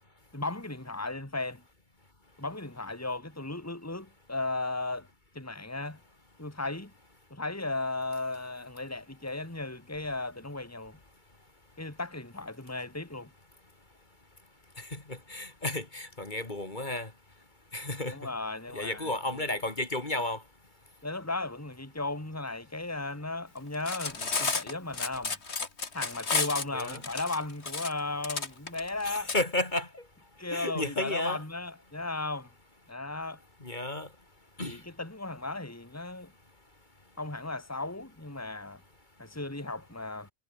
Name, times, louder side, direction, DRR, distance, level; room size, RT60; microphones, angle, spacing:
voice 1, 0.3-1.6 2.4-5.1 5.3-6.0 6.4-6.9 7.3-11.0 11.8-13.3 18.1-19.1 21.0-25.4 25.9-29.3 30.4-32.5 32.9-33.4 34.6-36.3 37.2-38.8 39.2-40.3, left 2 dB, 15° left, 2.6 m, -35 dB
voice 2, 14.8-17.1 17.7-18.2 18.7-20.4 26.7-27.0 29.0-30.0 30.5-31.4 33.6-34.1 34.6-34.8, left 2 dB, 45° left, 2.9 m, -33 dB
Cutlery silverware, 23.7-29.4, left 4 dB, 70° left, 2.5 m, -32 dB
omnidirectional pair, 1.2 m